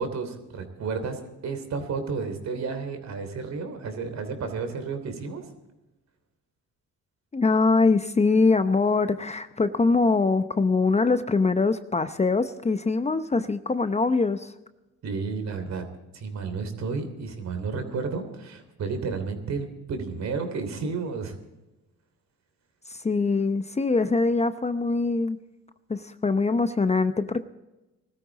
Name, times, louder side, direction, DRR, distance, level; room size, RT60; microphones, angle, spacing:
voice 1, 0.0-5.4 15.0-15.8 16.1-21.3, right 4 dB, 60° right, 7 dB, 3.2 m, -32 dB
voice 2, 7.3-14.5 22.9-25.4 25.9-27.4, left 3 dB, 20° left, 11 dB, 0.7 m, -23 dB
20.0 x 13.5 x 4.1 m, 1.0 s
cardioid pair, 90°, 30 cm